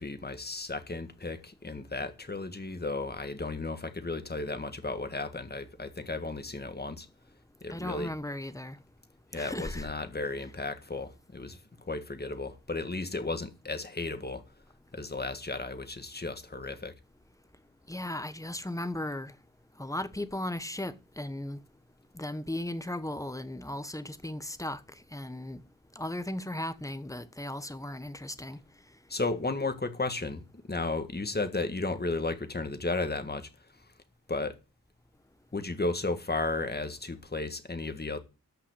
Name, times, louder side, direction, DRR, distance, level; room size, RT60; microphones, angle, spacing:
voice 1, 0.0-7.1 7.6-8.1 9.3-14.4 14.9-16.9 29.1-30.4 30.7-33.5 34.3-34.6 35.5-38.2, left 3 dB, 30° left, 1.8 m, -34 dB
voice 2, 7.7-8.8 9.3-9.9 17.9-19.3 19.8-21.6 22.1-25.6 25.9-28.6, left 1 dB, 10° left, 1.2 m, -36 dB
13.5 x 5.8 x 8.3 m
wide cardioid pair, 115°, 34 cm